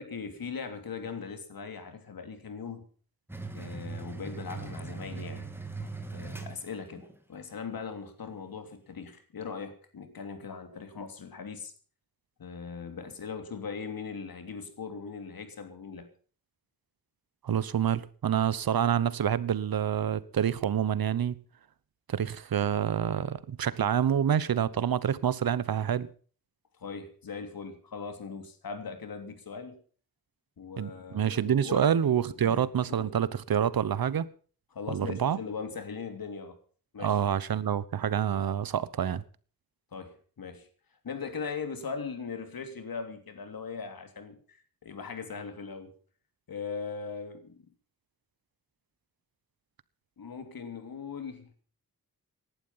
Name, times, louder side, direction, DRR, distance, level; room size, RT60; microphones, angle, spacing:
voice 1, 0.0-2.9 3.5-5.5 5.8-11.7 12.4-16.1 26.8-29.8 30.6-31.9 32.4-33.1 34.7-36.6 36.9-37.2 39.9-40.7 41.0-45.9 46.5-47.7 50.2-51.5, left 5 dB, 80° left, 3.0 m, -40 dB
sound 1, 3.3-7.1, right 4 dB, 5° right, 2.7 m, -40 dB
voice 2, 17.4-21.3 22.1-26.1 30.8-34.3 34.9-35.4 37.0-39.2, right 9 dB, 85° right, 1.0 m, -27 dB
17.5 x 11.5 x 5.8 m
wide cardioid pair, 110°, 35 cm